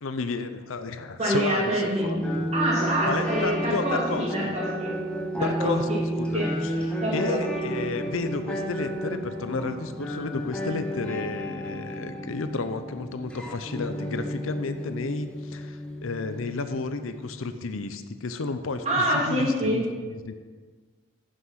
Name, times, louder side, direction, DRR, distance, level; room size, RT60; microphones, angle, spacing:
voice 1, 0.0-2.2 3.1-4.5 5.4-5.9 6.2-6.7 7.1-20.3, left 3 dB, 75° left, 10 dB, 0.6 m, -32 dB
voice 2, 1.2-2.2 2.5-4.9 5.4-6.0 6.3-6.5 7.0-7.4 18.8-19.8, right 1 dB, 30° right, -5 dB, 2.7 m, -26 dB
sound 1, 2.0-17.5, equal, 5° left, 0.9 m, -32 dB
9.5 x 6.5 x 5.8 m, 1.5 s
head